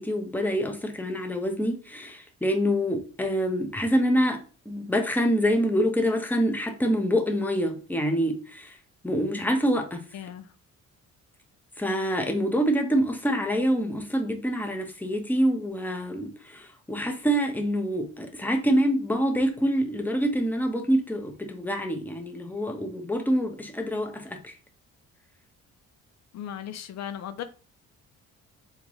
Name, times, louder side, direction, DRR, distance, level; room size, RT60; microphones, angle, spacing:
voice 1, 0.0-4.4 4.7-8.8 9.0-10.0 11.8-24.5, equal, 5° left, 0.8 m, -26 dB
voice 2, 10.1-10.5 26.3-27.4, left 9 dB, 60° left, 0.4 m, -36 dB
3.6 x 3.6 x 3.0 m
cardioid pair, 90°, 30 cm